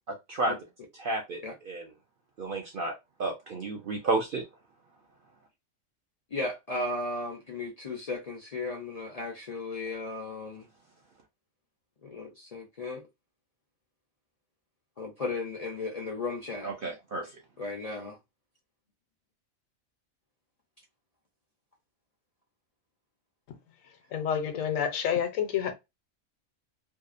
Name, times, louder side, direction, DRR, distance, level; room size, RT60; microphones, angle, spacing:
voice 1, 0.1-0.6 0.9-1.9 2.4-2.9 3.2-4.5 16.6-17.3, right 2 dB, 65° right, 0.5 m, -31 dB
voice 2, 6.3-10.7 12.0-13.0 15.0-16.7 17.6-18.2, left 2 dB, 60° left, 0.4 m, -35 dB
voice 3, 24.1-25.7, left 8 dB, 80° left, 1.0 m, -28 dB
2.7 x 2.0 x 2.4 m
omnidirectional pair, 1.4 m